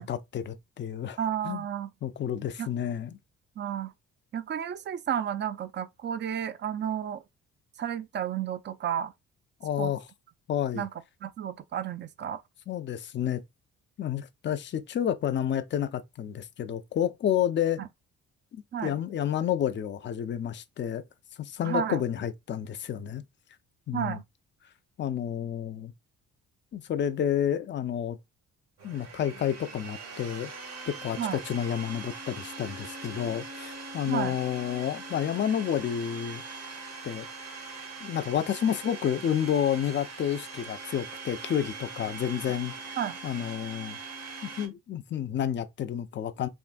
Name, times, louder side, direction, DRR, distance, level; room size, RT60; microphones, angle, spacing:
voice 1, 0.0-1.2 1.4-1.6 2.0-3.2 9.6-10.0 10.5-10.9 12.7-13.4 14.0-17.8 18.5-21.0 21.4-23.2 23.9-24.2 25.0-25.9 26.7-28.2 28.8-30.5 30.9-36.4 37.0-37.3 38.0-43.0 43.2-44.0 44.4-46.5, left 9 dB, 40° left, 0.5 m, -30 dB
voice 2, 1.2-1.9 2.6-2.7 3.6-3.9 4.3-7.2 7.8-9.1 9.8-9.9 10.7-10.9 11.2-12.4 17.8-17.9 18.7-18.9 21.6-22.0 23.9-24.2 31.2-31.4 34.1-34.4 43.0-43.2, right 9 dB, 35° right, 0.4 m, -32 dB
Domestic sounds home sounds, 28.8-44.7, right 4 dB, 55° right, 1.4 m, -42 dB
3.5 x 2.5 x 2.5 m
cardioid pair, 90°, 30 cm